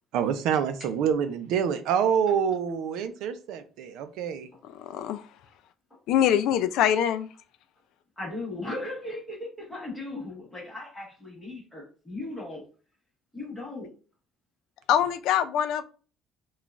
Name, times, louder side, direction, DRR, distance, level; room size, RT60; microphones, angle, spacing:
voice 1, 0.1-4.5, right 7 dB, 65° right, 0.5 m, -26 dB
voice 2, 4.8-5.2 6.1-7.3 14.9-15.8, left 10 dB, 65° left, 0.3 m, -24 dB
voice 3, 8.2-12.6 13.3-13.9, left 2 dB, 10° left, 1.4 m, -37 dB
5.6 x 2.3 x 2.4 m
cardioid pair, 175°, 0 cm